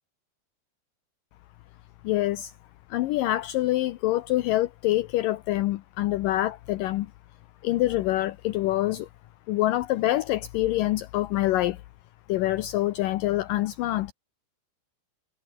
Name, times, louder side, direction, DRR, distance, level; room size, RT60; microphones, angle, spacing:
voice 1, 2.0-2.5 2.9-7.1 7.6-9.1 9.5-11.8 12.3-14.1, left 16 dB, 85° left, 2.0 m, -25 dB
omnidirectional pair, 4.8 m